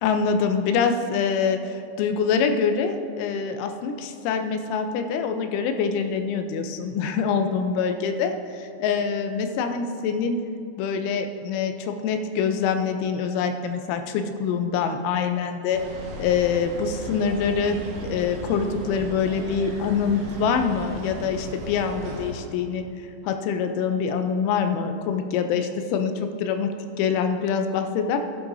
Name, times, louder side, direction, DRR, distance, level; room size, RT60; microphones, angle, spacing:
voice 1, 0.0-8.3 8.8-10.4 10.8-15.8 16.2-22.8 23.2-26.7 27.0-28.2, left 6 dB, 90° left, 6 dB, 3.2 m, -25 dB
sound 1, 15.7-22.5, equal, 70° right, 3.7 m, -36 dB
15.0 x 10.5 x 2.7 m, 2.4 s
omnidirectional pair, 5.4 m